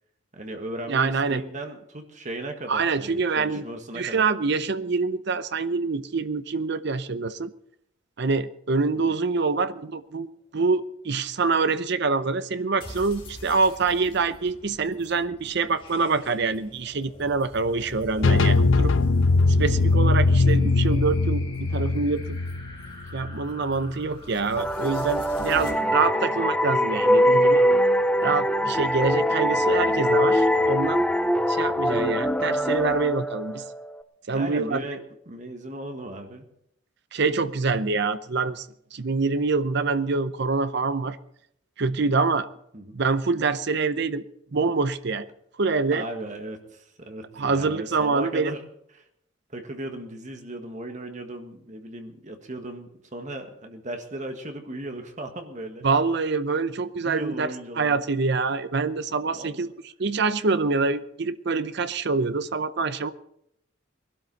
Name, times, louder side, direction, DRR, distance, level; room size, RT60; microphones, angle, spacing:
voice 1, 0.3-4.2 9.1-9.2 18.2-18.5 25.5-25.9 34.3-35.0 35.2-36.5 42.7-42.9 45.9-48.6 48.9-49.0 49.5-55.9 57.0-58.0 59.3-59.6, right 1 dB, 40° right, 5 dB, 1.7 m, -37 dB
voice 2, 0.9-1.4 2.7-3.6 3.9-7.5 8.2-18.9 19.6-22.2 23.1-27.6 28.2-31.0 31.5-33.6 34.3-34.8 37.1-38.7 38.9-41.2 41.8-42.5 42.9-44.2 44.5-45.3 45.6-46.1 47.4-48.5 55.8-57.5 57.7-59.7 60.0-63.1, right 4 dB, 60° right, 13 dB, 0.7 m, -25 dB
sound 1, 12.8-25.7, left 1 dB, 25° left, 2.8 m, -43 dB
sound 2, 18.2-23.9, left 3 dB, 70° left, 0.5 m, -21 dB
sound 3, 24.6-34.0, equal, 5° left, 0.6 m, -22 dB
20.5 x 12.5 x 4.1 m, 0.73 s
head